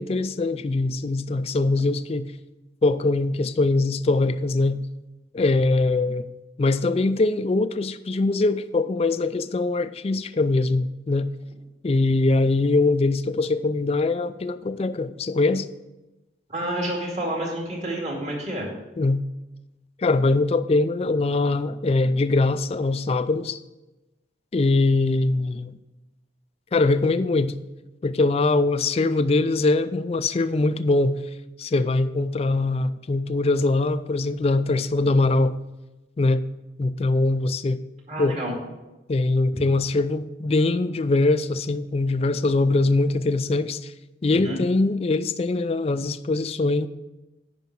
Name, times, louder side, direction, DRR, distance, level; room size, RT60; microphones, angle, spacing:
voice 1, 0.0-2.3 2.8-4.8 5.3-6.3 6.6-11.3 11.8-15.7 19.0-19.2 20.0-23.6 24.5-25.7 26.7-27.5 28.0-31.2 31.6-35.5 36.2-36.4 36.8-37.8 38.2-38.4 39.1-43.9 44.2-46.9, left 2 dB, 30° left, 13 dB, 0.3 m, -22 dB
voice 2, 16.5-18.7 38.1-38.5 44.3-44.6, right 1 dB, 35° right, -2 dB, 2.2 m, -29 dB
9.2 x 5.5 x 5.9 m, 1.0 s
head